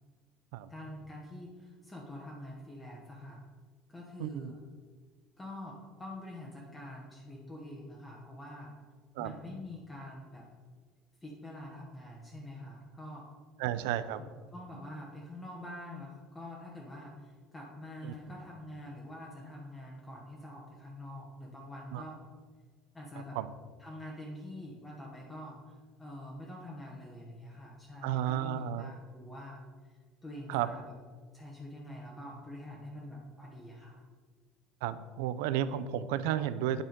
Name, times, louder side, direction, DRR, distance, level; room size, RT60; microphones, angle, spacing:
voice 1, 0.7-3.4 3.9-4.6 5.4-8.7 9.2-10.4 11.2-13.3 14.5-22.2 22.9-23.4 23.8-29.6 29.8-29.9 30.2-30.9 31.3-34.0, left 1 dB, 15° left, -3 dB, 1.1 m, -46 dB
voice 2, 4.2-4.5 9.2-9.3 13.6-14.3 18.0-18.1 21.9-22.0 23.3-23.5 28.0-28.9 30.5-30.7 34.8-36.8, right 11 dB, 90° right, 14 dB, 0.4 m, -32 dB
9.3 x 3.6 x 5.2 m, 1.5 s
cardioid pair, 125°, 0 cm